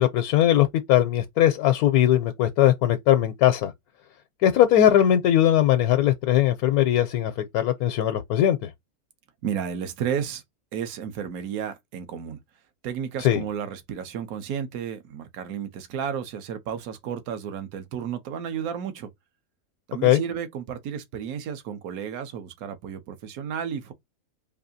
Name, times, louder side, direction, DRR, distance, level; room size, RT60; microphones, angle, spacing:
voice 1, 0.0-3.7 4.4-8.7 13.2-13.4 20.0-20.2, left 12 dB, 85° left, 1.1 m, -20 dB
voice 2, 9.4-10.4 10.7-12.4 12.8-19.1 19.9-23.9, right 8 dB, 75° right, 1.2 m, -32 dB
4.6 x 2.7 x 2.6 m
omnidirectional pair, 1.6 m